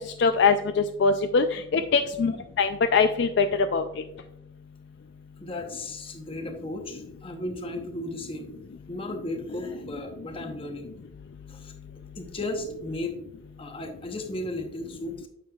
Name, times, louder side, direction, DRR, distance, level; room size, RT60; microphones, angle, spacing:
voice 1, 0.2-3.5 3.7-3.8, left 5 dB, 55° left, 8 dB, 0.3 m, -22 dB
voice 2, 5.4-8.6 8.9-10.9 11.5-11.7 12.1-13.2 13.6-15.3, left 1 dB, 25° left, 4 dB, 0.9 m, -35 dB
9.0 x 6.5 x 2.3 m, 0.86 s
head